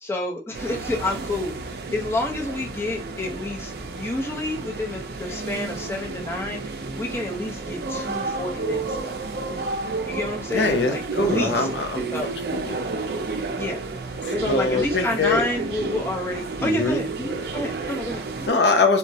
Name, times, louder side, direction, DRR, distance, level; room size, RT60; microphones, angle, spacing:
voice 1, 0.0-9.2 10.0-11.7 12.1-12.3 13.6-13.8 14.3-18.5, left 2 dB, 15° left, 0.5 m, -29 dB
sound 1, 0.5-18.5, right 3 dB, 60° right, 0.4 m, -31 dB
voice 2, 10.5-12.8 14.3-15.4 16.6-17.0 18.5-19.0, left 3 dB, 75° left, 0.6 m, -23 dB
3.5 x 2.0 x 2.6 m
head